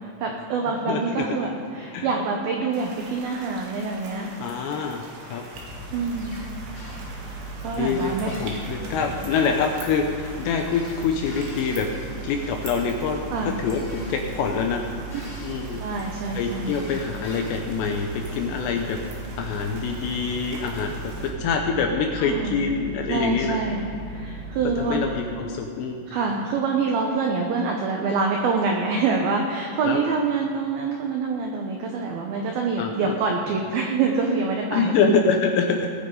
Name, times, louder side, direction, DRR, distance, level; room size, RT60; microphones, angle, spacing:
voice 1, 0.0-4.3 5.9-6.4 7.6-8.3 13.3-13.6 15.8-16.8 22.2-22.6 23.1-25.1 26.1-34.9, right 4 dB, 85° right, 1 dB, 2.1 m, -26 dB
voice 2, 0.9-1.2 1.9-2.1 4.4-5.0 5.3-5.4 7.7-11.9 12.2-14.8 15.4-15.8 16.3-19.0 19.4-23.6 24.8-26.0 29.8-30.0 32.8-33.2 34.7-35.9, left 5 dB, 80° left, 2 dB, 2.6 m, -25 dB
sound 1, 2.7-21.3, right 2 dB, 65° right, 3.3 m, -43 dB
sound 2, 5.5-25.2, right 3 dB, 60° left, 2.8 m, -37 dB
sound 3, 6.2-6.5 6.8-7.0 7.9-9.3 10.7-12.6 13.7-14.3 15.1-15.9 16.6-17.7, left 1 dB, 35° left, 4.0 m, -45 dB
20.0 x 9.6 x 3.9 m, 2.4 s
omnidirectional pair, 5.8 m